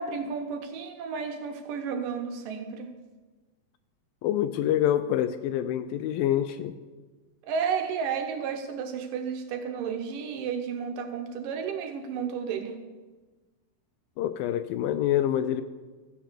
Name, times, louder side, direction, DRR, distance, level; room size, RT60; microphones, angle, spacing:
voice 1, 0.0-2.9 7.4-12.8, right 6 dB, 70° right, 6 dB, 2.3 m, -32 dB
voice 2, 4.2-6.7 14.2-15.6, left 11 dB, 80° left, 11 dB, 2.2 m, -26 dB
14.0 x 9.1 x 6.8 m, 1.3 s
omnidirectional pair, 4.4 m